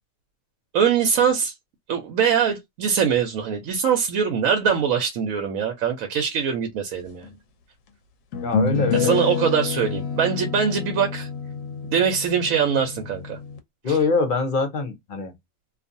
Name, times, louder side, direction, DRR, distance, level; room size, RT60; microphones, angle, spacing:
voice 1, 0.7-1.5 1.9-7.3 8.9-11.3 11.9-13.4 13.9-14.0, right 7 dB, 80° right, 1.0 m, -22 dB
sound 1, 7.2-7.3 8.3-13.6, left 5 dB, 75° left, 1.0 m, -28 dB
voice 2, 8.4-9.2 13.8-15.3, left 4 dB, 50° left, 0.6 m, -23 dB
2.4 x 2.4 x 2.5 m
omnidirectional pair, 1.4 m